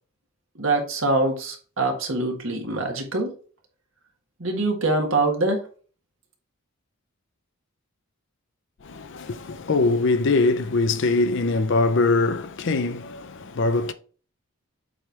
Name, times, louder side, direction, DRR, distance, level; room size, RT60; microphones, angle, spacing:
voice 1, 0.5-3.3 4.4-5.7, right 2 dB, 60° right, 1.6 m, -24 dB
voice 2, 8.8-13.9, left 3 dB, 55° left, 0.5 m, -22 dB
7.8 x 3.3 x 4.5 m
head